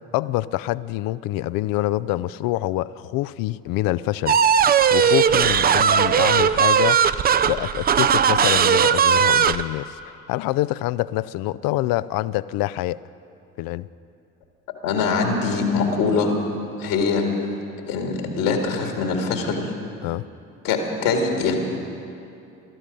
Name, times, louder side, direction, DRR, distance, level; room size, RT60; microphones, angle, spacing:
voice 1, 0.1-4.4 4.9-7.0 7.4-13.0 13.6-13.9 20.0-20.2, left 16 dB, 55° left, 18 dB, 0.5 m, -26 dB
sound 1, 4.3-9.6, right 8 dB, 25° right, 0.4 m, -18 dB
voice 2, 14.8-16.3 16.8-17.3 17.9-19.7 20.6-21.5, left 4 dB, 70° left, 3 dB, 2.1 m, -23 dB
20.0 x 13.0 x 5.2 m, 2.6 s
hypercardioid pair, 55°, 41 cm